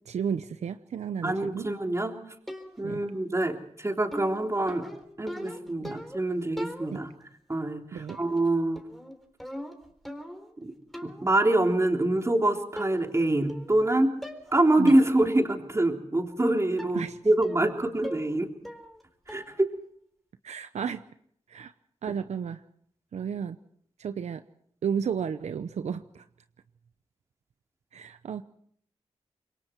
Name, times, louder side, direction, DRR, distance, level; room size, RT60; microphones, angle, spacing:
voice 1, 0.1-1.7 2.8-3.0 5.8-6.0 6.9-7.0 7.9-8.2 14.8-14.9 16.9-17.2 20.4-21.0 21.5-21.7 22.0-22.6 23.1-23.6 24.0-24.4 24.8-26.2 27.9-28.4, right 7 dB, 75° right, 11 dB, 0.7 m, -33 dB
voice 2, 1.2-2.1 2.8-4.9 5.2-7.1 7.5-8.8 10.6-10.7 11.0-14.1 14.5-18.5 19.3-19.7, right 1 dB, 25° right, 2 dB, 3.5 m, -25 dB
sound 1, 2.5-3.0 4.1-6.3 6.6-7.2 8.1-8.5 8.8-10.6 10.9-11.3 12.2-12.3 12.8-13.2 13.5-13.9 14.2-14.5 14.9-15.1 15.5-15.6 16.8-17.0 17.4-17.7 18.0-18.4 18.6-19.0 19.3-19.6, equal, ahead, 3.9 m, -41 dB
26.5 x 22.5 x 4.6 m, 0.65 s
cardioid pair, 60°, 12 cm